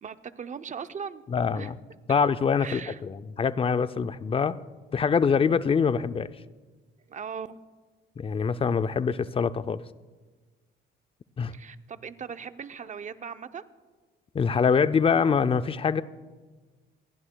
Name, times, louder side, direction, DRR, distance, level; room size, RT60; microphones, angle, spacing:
voice 1, 0.0-1.2 1.5-1.7 2.6-3.0 7.1-7.6 11.5-13.6, right 7 dB, 40° right, 0.6 m, -39 dB
voice 2, 1.3-1.8 2.1-4.6 4.9-6.3 8.2-9.8 11.4-11.5 14.3-16.0, left 6 dB, 30° left, 0.5 m, -24 dB
28.0 x 11.0 x 2.3 m
cardioid pair, 90°, 20 cm